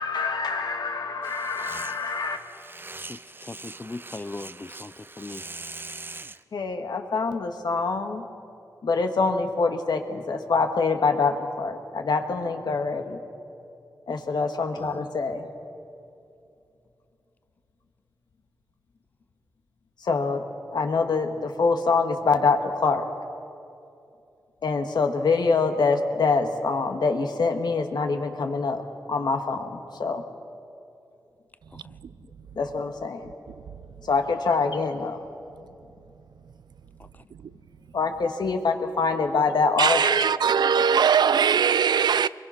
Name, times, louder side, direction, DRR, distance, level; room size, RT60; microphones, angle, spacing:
voice 1, 0.0-2.4 6.5-8.2 8.8-13.2 14.1-15.5 20.0-20.4 20.7-23.1 24.6-28.8 29.1-30.3 32.2-33.3 34.0-35.3 37.9-40.3, left 4 dB, 75° left, 1.8 m, -25 dB
sound 1, 1.2-6.4, right 3 dB, 30° right, 0.6 m, -42 dB
voice 2, 2.9-5.5 31.7-32.0 37.0-37.2, left 2 dB, 25° left, 0.5 m, -40 dB
voice 3, 39.8-42.3, right 7 dB, 85° right, 0.4 m, -21 dB
24.5 x 22.0 x 5.9 m
wide cardioid pair, 75°, 7 cm